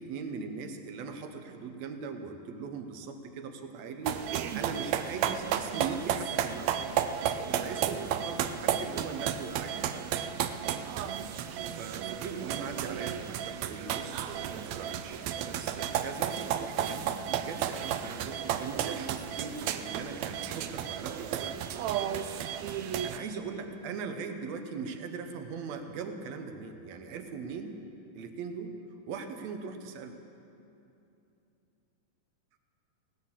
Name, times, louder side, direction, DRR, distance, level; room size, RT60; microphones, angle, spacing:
voice 1, 0.0-6.7 7.5-9.9 11.7-21.6 22.7-27.8 28.1-28.7 29.1-30.2, right 5 dB, 65° right, 6 dB, 1.9 m, -40 dB
sound 1, 4.0-23.2, right 9 dB, 85° right, 1.5 m, -33 dB
17.0 x 10.5 x 7.3 m, 2.8 s
omnidirectional pair, 3.8 m